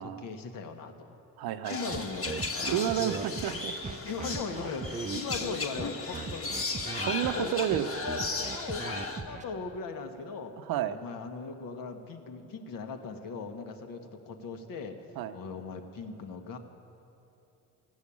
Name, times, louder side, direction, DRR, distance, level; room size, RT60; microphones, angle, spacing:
voice 1, 0.0-1.2 1.7-2.9 4.0-6.5 7.2-10.5 10.9-16.6, left 4 dB, 60° left, 5 dB, 1.3 m, -39 dB
voice 2, 1.4-2.0 2.7-3.8 7.1-7.9 10.7-11.0 15.2-15.3, right 11 dB, 70° right, 10 dB, 0.8 m, -30 dB
sound 1, 1.6-9.2, left 3 dB, 35° left, 1.5 m, -36 dB
sound 2, 1.9-9.4, right 4 dB, 20° right, 0.5 m, -38 dB
15.0 x 6.3 x 8.6 m, 2.9 s
supercardioid pair, 85°, 38 cm